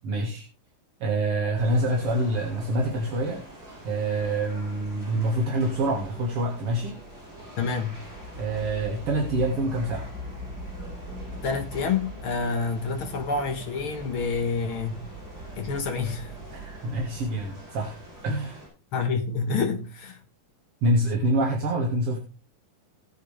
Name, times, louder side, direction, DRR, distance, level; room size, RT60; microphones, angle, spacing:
voice 1, 0.0-0.5 1.0-3.4 3.8-7.0 8.4-10.1 16.5-17.9 18.2-18.6 20.8-22.2, right 1 dB, 50° right, 2.2 m, -26 dB
sound 1, 1.6-18.7, equal, 25° right, 7.5 m, -41 dB
voice 2, 7.6-8.0 11.4-15.0 15.6-16.3 18.9-20.2, left 4 dB, 65° left, 1.3 m, -28 dB
19.5 x 6.5 x 3.4 m
omnidirectional pair, 4.3 m